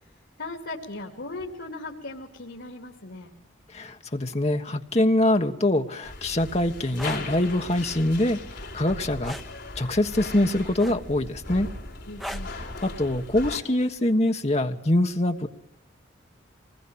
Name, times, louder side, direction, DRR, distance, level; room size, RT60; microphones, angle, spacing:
voice 1, 0.4-3.3 12.1-12.5, left 2 dB, 80° left, 1 dB, 2.7 m, -38 dB
voice 2, 3.7-8.4 8.7-9.3 9.8-11.7 12.5-15.5, left 1 dB, 35° left, 5 dB, 1.4 m, -24 dB
sound 1, 6.0-13.6, left 2 dB, 60° left, 5.1 m, -38 dB
sound 2, 7.0-7.2 9.2-9.5 10.8-11.2 12.2-12.5 14.0-14.1, equal, ahead, 1.1 m, -36 dB
24.5 x 20.0 x 8.8 m, 0.84 s
head